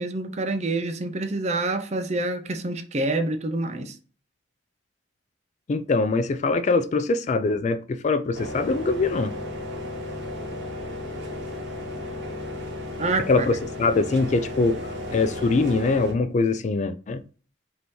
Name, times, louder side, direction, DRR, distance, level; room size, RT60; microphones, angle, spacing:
voice 1, 0.0-4.0 13.0-13.5, right 2 dB, 40° right, 0.5 m, -27 dB
voice 2, 5.7-9.3 13.3-17.2, left 3 dB, 40° left, 0.3 m, -23 dB
sound 1, 8.3-16.1, left 1 dB, 75° right, 1.2 m, -34 dB
5.3 x 2.8 x 3.0 m
head